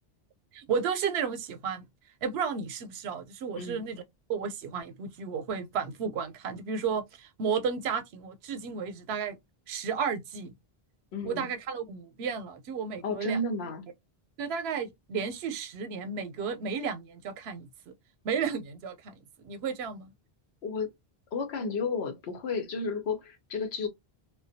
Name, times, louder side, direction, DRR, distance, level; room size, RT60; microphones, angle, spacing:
voice 1, 0.5-1.8 2.2-4.0 4.3-9.4 9.7-10.5 11.2-13.4 14.4-17.9 18.2-20.1, right 6 dB, 85° right, 0.8 m, -33 dB
voice 2, 3.5-3.8 11.1-11.5 13.0-13.9 20.6-20.9 21.3-23.9, left 3 dB, 85° left, 0.9 m, -32 dB
2.2 x 2.1 x 2.6 m
omnidirectional pair, 1.0 m